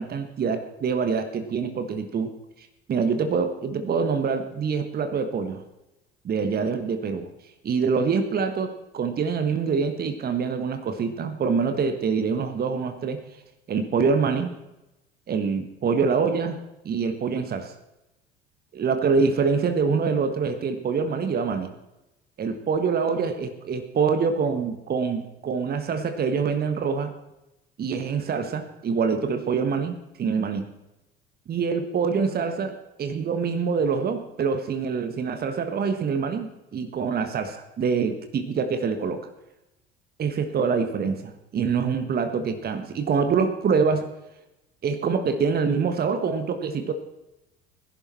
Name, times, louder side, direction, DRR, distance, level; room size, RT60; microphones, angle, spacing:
voice 1, 0.0-2.3 2.9-5.6 6.2-7.3 7.6-13.2 13.7-14.5 15.3-16.6 16.8-17.7 18.7-21.7 22.4-27.1 27.8-30.7 31.5-39.3 40.2-44.1 44.8-46.9, right 5 dB, 30° right, 8 dB, 1.5 m, -25 dB
18.5 x 11.0 x 4.3 m, 0.93 s
figure-of-eight pair, 60°, 30 cm